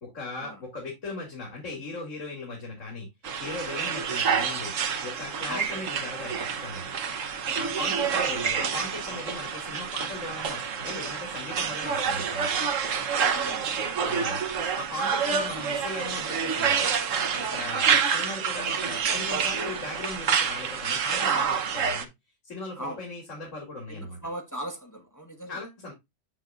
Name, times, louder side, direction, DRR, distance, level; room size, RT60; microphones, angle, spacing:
voice 1, 0.0-3.1 3.4-4.7 5.0-6.9 7.5-12.5 14.1-14.4 14.8-16.9 17.4-22.1 22.4-24.2 25.5-25.9, left 2 dB, 80° left, 2.8 m, -38 dB
sound 1, 3.2-22.0, right 6 dB, 85° right, 1.4 m, -28 dB
voice 2, 7.8-8.3 13.3-14.0 22.8-23.0 23.9-25.6, right 1 dB, 15° left, 1.4 m, -39 dB
7.4 x 7.2 x 2.4 m
omnidirectional pair, 1.3 m